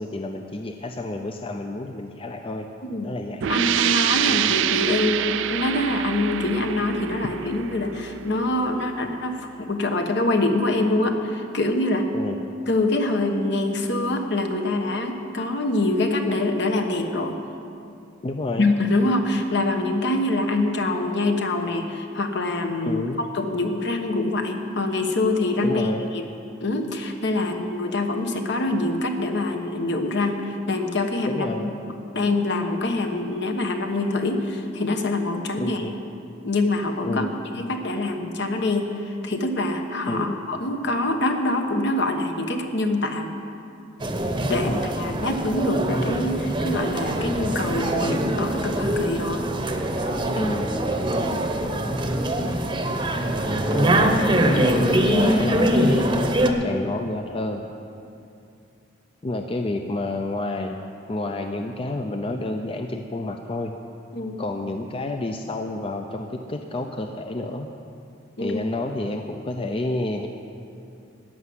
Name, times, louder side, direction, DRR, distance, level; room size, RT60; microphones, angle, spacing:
voice 1, 0.0-2.7 3.0-3.5 4.3-4.5 12.1-12.4 18.2-18.7 22.9-23.2 25.6-26.0 31.3-31.7 35.6-35.9 37.0-37.3 40.1-40.4 44.5-44.9 50.4-50.7 53.7-57.6 59.2-60.8 61.1-63.7 64.4-67.7 68.4-70.3, left 2 dB, 30° left, 4 dB, 0.5 m, -29 dB
sound 1, 3.4-8.9, right 10 dB, 70° right, 0.3 m, -26 dB
voice 2, 3.5-12.1 12.7-17.4 18.6-23.0 23.3-26.3 26.6-31.7 32.1-35.8 36.4-37.3 37.5-43.3 44.4-49.4 64.1-64.4 68.4-68.6, left 2 dB, 60° left, 5 dB, 1.2 m, -25 dB
sound 2, 44.0-56.5, right 1 dB, 25° right, 0.9 m, -23 dB
14.0 x 6.0 x 9.7 m, 2.6 s
head